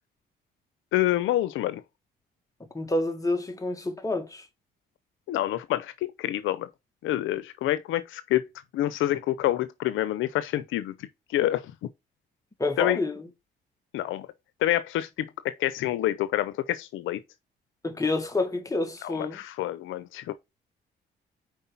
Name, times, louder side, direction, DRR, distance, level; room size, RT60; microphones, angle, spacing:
voice 1, 0.9-1.8 5.3-6.7 7.0-8.5 8.7-11.7 12.8-13.0 13.9-14.3 14.6-17.2 19.0-20.3, left 14 dB, 85° left, 0.6 m, -27 dB
voice 2, 2.7-4.5 12.6-13.3 17.8-19.4, left 2 dB, 15° left, 1.9 m, -28 dB
5.4 x 4.7 x 5.6 m
cardioid pair, 90°, 20 cm